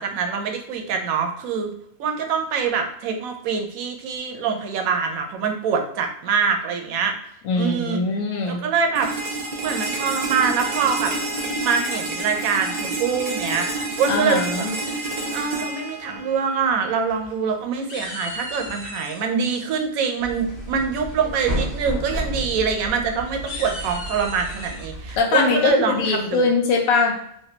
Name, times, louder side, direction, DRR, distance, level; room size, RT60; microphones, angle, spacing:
voice 1, 0.0-1.7 2.0-7.1 7.5-8.0 8.5-9.1 9.6-11.1 11.6-13.7 14.0-15.0 15.3-26.4, right 6 dB, 85° right, 4 dB, 1.0 m, -24 dB
voice 2, 7.4-8.6 14.1-14.7 25.2-27.2, left 4 dB, 90° left, 1 dB, 1.1 m, -21 dB
sound 1, 9.0-16.9, right 2 dB, 65° right, 0.4 m, -28 dB
sound 2, 16.9-17.5 17.9-19.3 20.7-21.1 21.5-21.8 22.0-22.2 22.6-22.7 23.3-24.9, left 1 dB, 50° left, 0.5 m, -36 dB
sound 3, 20.2-25.2, right 1 dB, 15° left, 1.2 m, -32 dB
3.2 x 2.5 x 2.8 m, 0.73 s
omnidirectional pair, 1.4 m